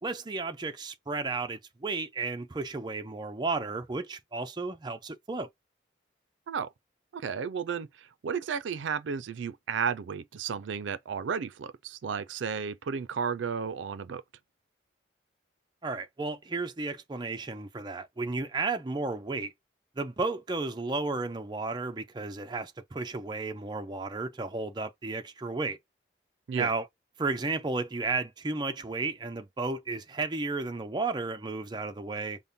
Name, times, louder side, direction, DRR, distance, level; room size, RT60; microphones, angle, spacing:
voice 1, 0.0-5.5 15.8-19.5 20.0-25.8 26.5-26.9 27.2-32.4, right 3 dB, 25° right, 0.5 m, -33 dB
voice 2, 7.1-14.2 26.5-26.7, right 6 dB, 85° right, 0.4 m, -33 dB
5.2 x 2.1 x 2.7 m
head